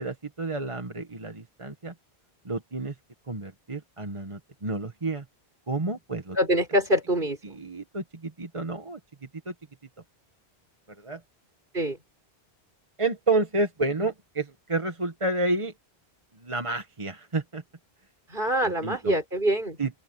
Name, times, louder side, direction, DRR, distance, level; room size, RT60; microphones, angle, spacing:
voice 1, 0.0-1.9 2.4-2.9 3.3-5.2 5.7-6.4 7.4-9.0 9.5-9.6 11.0-11.2 13.0-15.7 16.4-17.6 18.6-19.1 19.8-19.9, right 2 dB, 30° right, 1.3 m, -30 dB
voice 2, 6.3-7.6 11.7-12.0 18.3-19.8, equal, 50° right, 6.3 m, -25 dB
open air
omnidirectional pair, 1.1 m